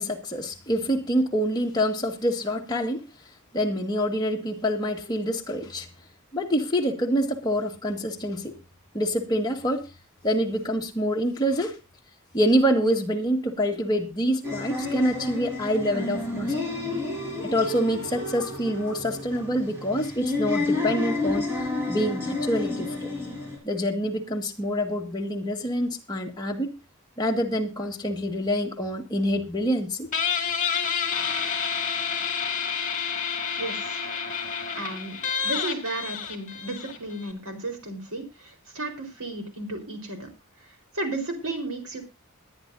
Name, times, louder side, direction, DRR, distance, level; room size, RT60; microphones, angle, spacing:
voice 1, 0.0-3.0 3.5-5.9 6.3-8.5 8.9-9.8 10.2-11.8 12.3-16.5 17.4-21.5 21.9-23.1 23.6-26.8 27.2-30.1, equal, 20° left, 1.8 m, -26 dB
sound 1, 14.4-23.6, left 2 dB, 10° right, 6.1 m, -30 dB
Guitar, 30.1-37.3, left 7 dB, 35° left, 2.3 m, -29 dB
voice 2, 33.6-34.2 34.7-40.3 40.9-42.0, right 2 dB, 90° right, 4.4 m, -34 dB
22.0 x 9.6 x 2.7 m
head